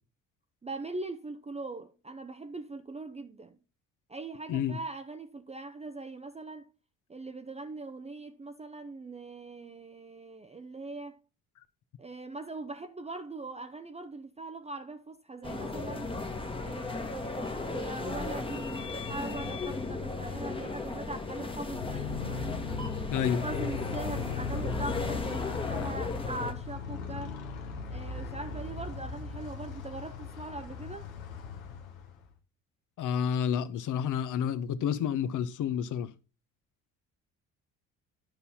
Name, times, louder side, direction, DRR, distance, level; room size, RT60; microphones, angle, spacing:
voice 1, 0.6-3.6 4.1-6.7 7.1-11.2 12.0-16.1 16.6-22.1 23.2-27.4 27.9-31.1, right 2 dB, 15° right, 0.7 m, -41 dB
sound 1, 15.4-26.5, left 3 dB, 15° left, 1.3 m, -36 dB
Motorcycle, 21.6-32.3, left 5 dB, 80° left, 1.2 m, -38 dB
voice 2, 23.1-23.4 33.0-36.1, left 8 dB, 50° left, 0.9 m, -30 dB
10.5 x 5.5 x 4.3 m
hypercardioid pair, 55°, 40 cm